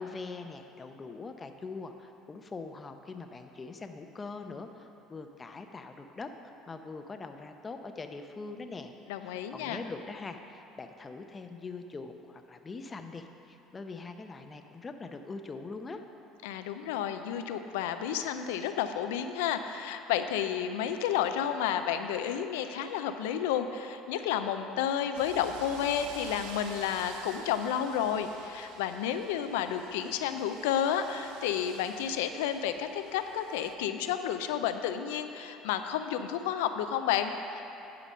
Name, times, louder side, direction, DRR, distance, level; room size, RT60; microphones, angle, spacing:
voice 1, 0.0-6.3 6.7-8.9 9.2-16.0, left 4 dB, 30° left, 6 dB, 0.7 m, -42 dB
voice 2, 9.1-9.8 16.4-37.6, left 9 dB, 85° left, 8 dB, 0.4 m, -31 dB
sound 1, 25.1-33.7, right 6 dB, 75° right, 0.6 m, -49 dB
10.0 x 5.1 x 5.6 m, 3.0 s
supercardioid pair, 80°, 0 cm